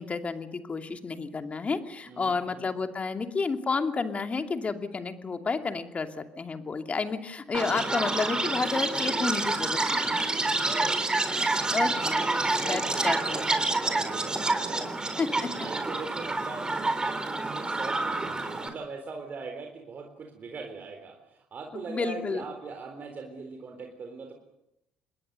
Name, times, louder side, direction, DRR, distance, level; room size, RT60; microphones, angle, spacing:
voice 1, 0.0-10.2 11.4-13.5 15.2-15.5 21.9-22.4, left 4 dB, 30° left, 6 dB, 2.7 m, -31 dB
voice 2, 2.0-2.6 10.6-11.0 12.3-24.3, right 4 dB, 40° right, 4 dB, 3.8 m, -41 dB
Chirp tweet, 7.5-18.7, right 2 dB, 20° right, 4.0 m, -28 dB
28.0 x 20.5 x 6.7 m, 0.82 s
hypercardioid pair, 55°, 4 cm